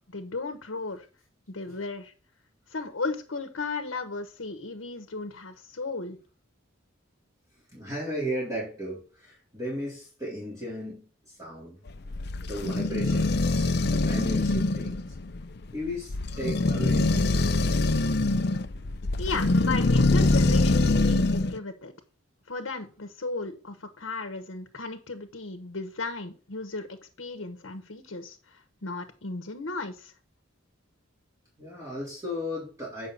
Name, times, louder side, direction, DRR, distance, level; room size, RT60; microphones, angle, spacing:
voice 1, 0.1-1.1 1.5-2.1 2.7-6.2 19.2-21.9 22.5-30.1, left 3 dB, 80° left, 7 dB, 1.1 m, -35 dB
voice 2, 7.7-11.8 12.3-15.0 15.7-17.6 31.6-33.1, equal, 15° right, -6 dB, 3.5 m, -36 dB
sound 1, 11.9-21.6, left 2 dB, 55° left, 0.6 m, -24 dB
8.5 x 6.1 x 4.0 m, 0.38 s
head